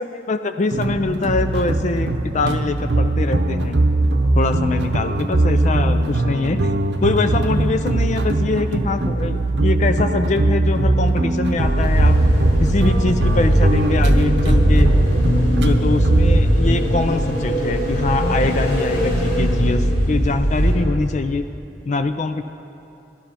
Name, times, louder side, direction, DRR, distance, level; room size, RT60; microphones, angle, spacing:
voice 1, 0.0-3.8 4.3-6.7 7.0-12.2 12.6-14.9 15.6-21.4 21.8-22.4, left 3 dB, 40° left, 9 dB, 0.4 m, -23 dB
sound 1, 0.7-16.4, right 2 dB, 75° right, 0.8 m, -20 dB
sound 2, 11.6-20.7, equal, 85° left, 3.6 m, -19 dB
14.5 x 11.5 x 5.7 m, 2.7 s
head